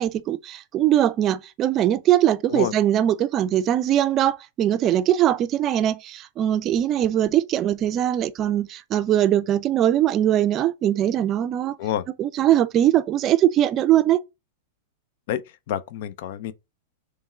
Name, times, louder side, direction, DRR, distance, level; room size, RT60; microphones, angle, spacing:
voice 1, 0.0-11.8 12.2-14.2, right 11 dB, 35° right, 0.4 m, -21 dB
voice 2, 15.7-16.5, left 11 dB, 65° left, 0.5 m, -27 dB
3.5 x 3.2 x 4.3 m
hypercardioid pair, 120°, 0 cm